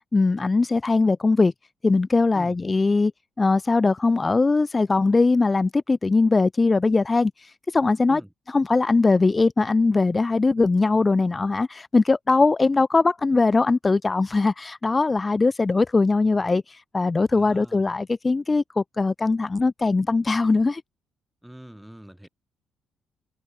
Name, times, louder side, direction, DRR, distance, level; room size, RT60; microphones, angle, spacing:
voice 1, 0.1-1.5 1.8-3.1 3.4-8.2 8.5-20.8, left 3 dB, 25° left, 2.3 m, -21 dB
voice 2, 17.3-17.8 21.4-22.3, equal, 5° right, 7.2 m, -43 dB
cardioid pair, 90°, 0 cm